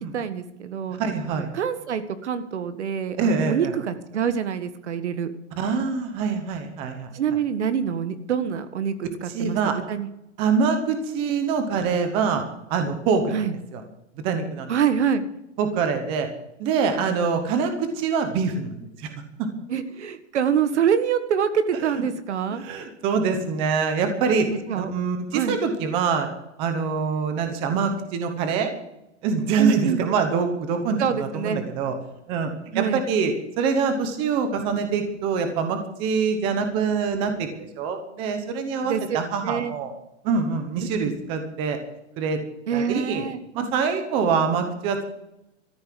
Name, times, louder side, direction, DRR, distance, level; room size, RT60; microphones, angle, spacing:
voice 1, 0.1-1.0 1.3-5.3 7.1-8.9 9.2-9.6 9.9-10.1 13.3-13.5 14.7-15.2 19.7-22.6 24.7-24.9 25.3-25.6 29.6-30.1 31.0-31.6 32.7-33.0 38.8-39.8 41.0-41.1 42.7-43.4, right 7 dB, 70° right, 11 dB, 1.6 m, -25 dB
voice 2, 1.0-1.5 3.2-3.7 5.6-7.1 9.3-9.8 10.4-12.4 12.7-13.4 13.7-13.8 14.2-14.7 15.6-16.3 16.6-19.1 19.4-19.5 21.8-22.0 22.5-26.3 26.6-28.7 29.2-31.9 32.3-32.5 32.7-37.5 37.8-39.9 40.2-41.8 42.2-42.4 42.7-43.2 43.5-45.1, right 5 dB, 15° right, 7 dB, 0.9 m, -24 dB
14.0 x 9.5 x 7.6 m, 0.85 s
supercardioid pair, 180°, 35 cm